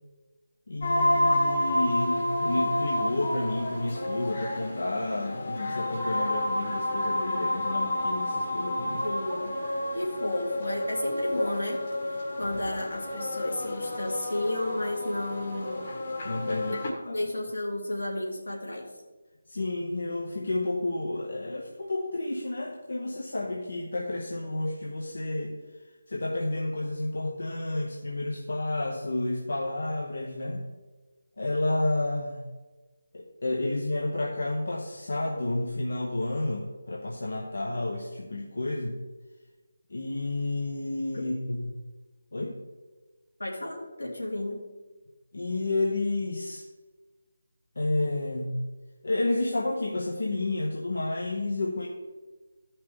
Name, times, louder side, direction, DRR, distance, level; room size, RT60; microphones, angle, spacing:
voice 1, 0.7-9.0 16.2-17.2 19.5-30.7 31.4-32.4 33.1-39.0 39.9-41.7 42.3-42.6 45.3-46.6 47.7-48.6 49.0-51.9, left 2 dB, 65° left, 0 dB, 1.1 m, -30 dB
sound 1, 0.8-16.9, left 1 dB, 45° left, 1.6 m, -30 dB
voice 2, 9.0-9.6 9.9-11.9 12.4-15.9 16.7-18.9 43.4-44.6, left 1 dB, 85° left, -2 dB, 2.4 m, -32 dB
13.0 x 5.7 x 3.6 m, 1.3 s
figure-of-eight pair, 155°, 0 cm